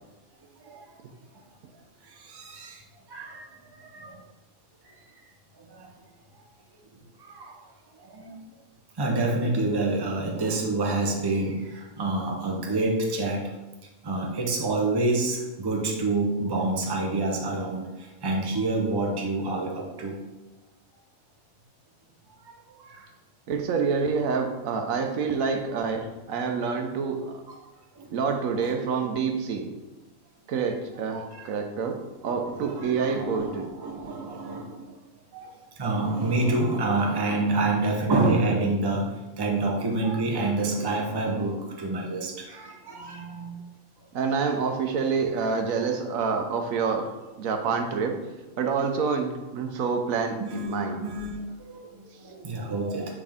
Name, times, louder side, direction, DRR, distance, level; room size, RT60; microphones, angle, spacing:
voice 1, 2.0-2.8 3.1-4.2 5.7-5.9 7.2-7.5 8.0-8.4 9.0-13.5 14.0-20.2 22.4-23.1 27.5-27.6 28.0-28.1 28.6-28.7 31.1-31.5 32.2-34.9 35.3-43.5 45.8-45.9 50.4-53.1, right 2 dB, 25° right, 0 dB, 0.7 m, -28 dB
voice 2, 23.5-27.4 28.1-29.7 30.5-33.7 44.1-48.2 48.6-51.0, right 5 dB, 75° right, 5 dB, 1.1 m, -27 dB
7.5 x 3.6 x 3.5 m, 1.1 s
omnidirectional pair, 1.5 m